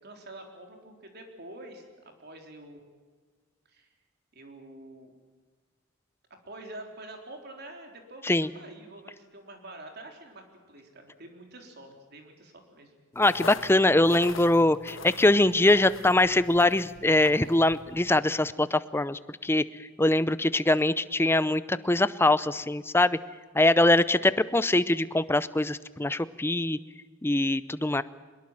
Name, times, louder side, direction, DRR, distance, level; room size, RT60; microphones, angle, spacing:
voice 1, 0.0-2.8 3.7-3.9 4.3-5.1 6.5-12.9 17.4-17.6, right 1 dB, 50° right, 3 dB, 3.9 m, -46 dB
sound 1, 13.1-18.2, left 4 dB, 70° left, 1.3 m, -43 dB
voice 2, 13.2-19.6 20.0-23.2 23.5-26.8 27.2-28.0, left 2 dB, 10° left, 15 dB, 0.6 m, -23 dB
23.0 x 21.5 x 7.6 m, 1.5 s
head